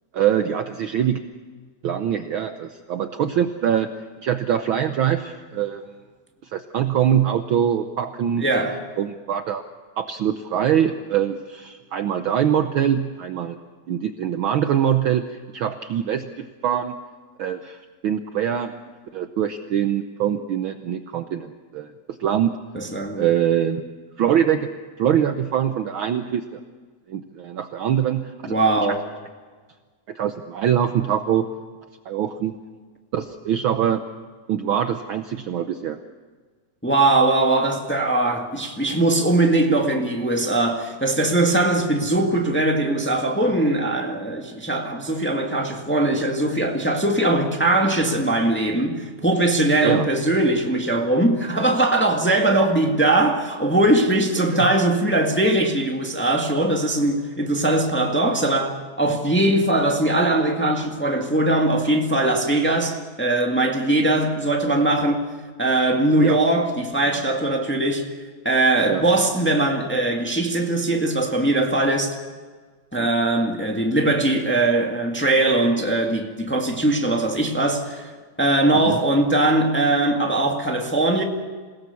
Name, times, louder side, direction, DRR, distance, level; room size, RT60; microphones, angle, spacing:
voice 1, 0.1-1.2 1.8-3.9 4.2-5.8 6.4-8.4 9.0-9.6 10.0-13.6 13.9-16.9 17.4-18.7 19.1-22.6 23.2-23.8 24.2-24.7 25.0-26.6 27.1-28.5 30.1-31.5 32.1-32.5 33.1-34.0 34.5-36.0 49.8-50.1 54.5-54.7 66.1-66.4 68.9-69.0 72.9-73.1 77.0-77.1 78.8-79.0, right 9 dB, 80° right, 1.1 m, -23 dB
voice 2, 8.4-8.8 22.7-23.3 28.5-29.0 36.8-65.2 65.6-68.1 68.4-72.2 72.9-78.1 78.4-81.2, right 2 dB, 5° left, 1.3 m, -20 dB
27.5 x 17.5 x 7.1 m
omnidirectional pair, 3.3 m